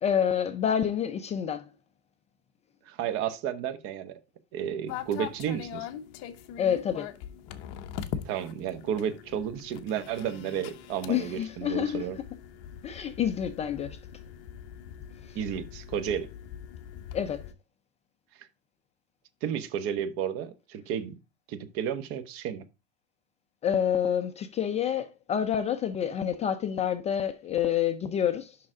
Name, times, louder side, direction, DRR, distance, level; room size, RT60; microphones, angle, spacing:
voice 1, 0.0-1.7 6.6-7.1 11.1-12.1 12.8-14.0 15.2-15.4 17.1-17.4 23.6-28.6, left 9 dB, 20° left, 0.4 m, -28 dB
voice 2, 2.9-4.2 4.5-5.9 8.2-12.2 15.3-16.3 19.4-21.1 21.5-22.7, right 9 dB, 45° right, 1.0 m, -32 dB
sound 1, 4.9-17.5, left 9 dB, 50° left, 0.9 m, -42 dB
6.7 x 5.8 x 3.7 m
supercardioid pair, 145°, 32 cm